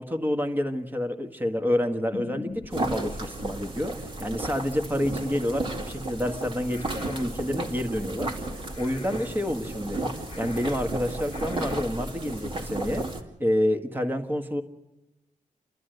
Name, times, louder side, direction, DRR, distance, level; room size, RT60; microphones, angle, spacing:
voice 1, 0.0-8.3 8.8-10.0 10.4-13.1 13.4-14.6, left 1 dB, 15° right, 4 dB, 1.6 m, -28 dB
sound 1, 2.1-11.8, left 4 dB, 45° left, 1.1 m, -46 dB
sound 2, 2.7-13.2, right 2 dB, 40° right, 2.3 m, -33 dB
29.0 x 12.5 x 7.9 m, 1.0 s
wide cardioid pair, 115°, 13 cm